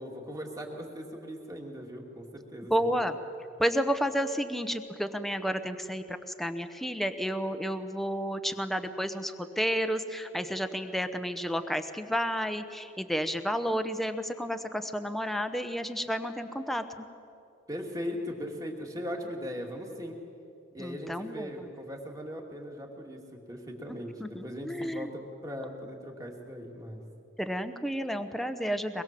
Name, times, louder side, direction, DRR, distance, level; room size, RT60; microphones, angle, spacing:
voice 1, 0.0-2.9 17.7-20.2 20.7-27.0, equal, 20° right, 1 dB, 2.7 m, -39 dB
voice 2, 2.7-3.2 3.6-16.8 20.8-21.7 23.9-25.1 27.4-29.0, equal, ahead, 8 dB, 0.9 m, -31 dB
23.5 x 21.5 x 7.7 m, 2.7 s
head